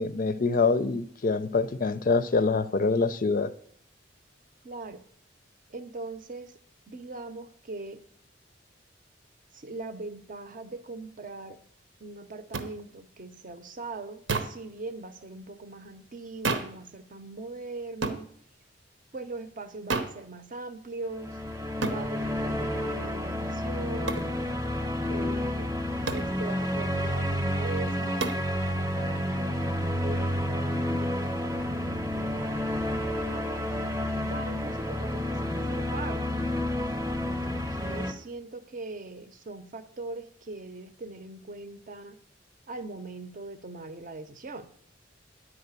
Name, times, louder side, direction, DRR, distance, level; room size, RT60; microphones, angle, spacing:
voice 1, 0.0-3.5, left 4 dB, 45° left, 13 dB, 0.5 m, -25 dB
voice 2, 4.6-5.0 5.7-6.5 6.9-8.0 9.5-11.6 12.0-18.3 19.1-21.4 21.9-24.3 25.1-25.7 26.1-32.7 33.3-36.3 37.2-42.2 42.7-44.7, right 3 dB, 45° right, 10 dB, 0.7 m, -41 dB
sound 1, 12.5-12.7 14.3-14.6 16.4-16.8 18.0-18.2 19.9-20.2 21.8-22.0 24.1-24.3 26.1-26.3 28.2-28.5, right 3 dB, 85° right, 0.9 m, -30 dB
sound 2, 21.1-38.1, left 1 dB, 15° right, 0.8 m, -30 dB
10.0 x 4.8 x 8.1 m, 0.62 s
head